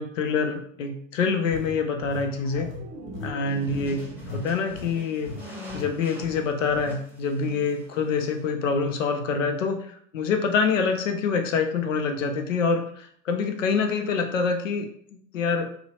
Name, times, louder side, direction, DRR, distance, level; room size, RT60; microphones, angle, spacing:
voice 1, 0.0-2.7 3.2-4.0 4.3-14.9 15.3-15.7, left 5 dB, 85° left, 5 dB, 0.6 m, -26 dB
sound 1, 1.5-4.4 4.7-5.0 5.3-5.4 5.7-5.9 6.2-6.9, left 4 dB, 35° left, 0.9 m, -39 dB
sound 2, 1.9-5.1 5.5-5.9, right 3 dB, 50° right, 0.6 m, -42 dB
sound 3, 3.4-8.5, left 1 dB, 5° right, 0.7 m, -45 dB
2.8 x 2.0 x 2.8 m, 0.62 s
hypercardioid pair, 95°, 37 cm